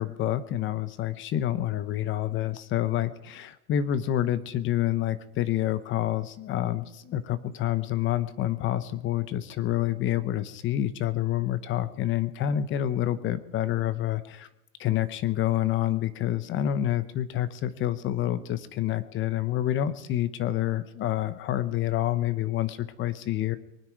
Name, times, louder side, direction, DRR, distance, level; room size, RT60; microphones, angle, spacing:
voice 1, 0.0-14.5 14.8-23.6, left 12 dB, 25° left, 14 dB, 0.9 m, -28 dB
23.5 x 9.6 x 4.7 m, 0.95 s
supercardioid pair, 150°, 44 cm